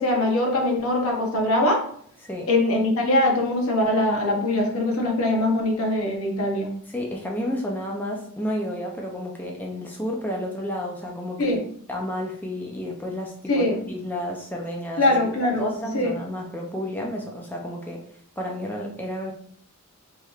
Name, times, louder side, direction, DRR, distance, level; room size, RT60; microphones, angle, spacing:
voice 1, 0.0-1.8 2.5-6.7 11.4-11.6 13.5-13.8 15.0-15.7 15.9-16.1, left 1 dB, 70° left, 1 dB, 0.9 m, -22 dB
voice 2, 6.9-11.6 11.9-15.1 15.6-18.0 18.4-19.3, left 1 dB, 10° left, -1 dB, 0.4 m, -31 dB
4.3 x 3.2 x 2.3 m, 0.62 s
head